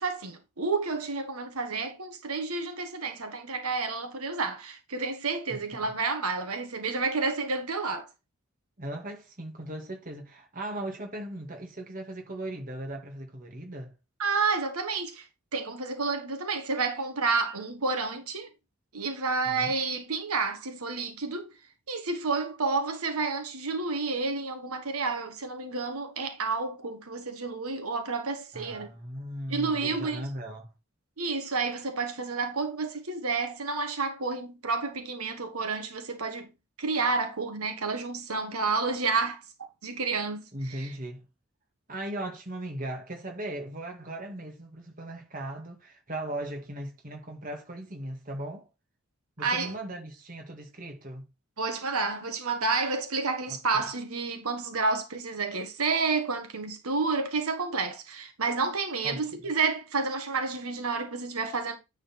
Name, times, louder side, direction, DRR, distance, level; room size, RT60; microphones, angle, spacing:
voice 1, 0.0-8.1 14.2-15.3 15.5-18.5 18.9-21.5 21.9-28.9 29.5-30.3 31.2-36.5 36.8-39.4 39.8-40.4 40.7-40.9 49.4-49.7 51.6-61.8, right 4 dB, 80° right, 1.5 m, -30 dB
voice 2, 8.8-13.9 19.5-19.7 28.5-30.7 40.5-41.3 41.9-48.7 49.4-51.3 53.5-53.9 59.0-59.4, right 1 dB, 40° right, 1.9 m, -38 dB
9.6 x 4.2 x 4.2 m
head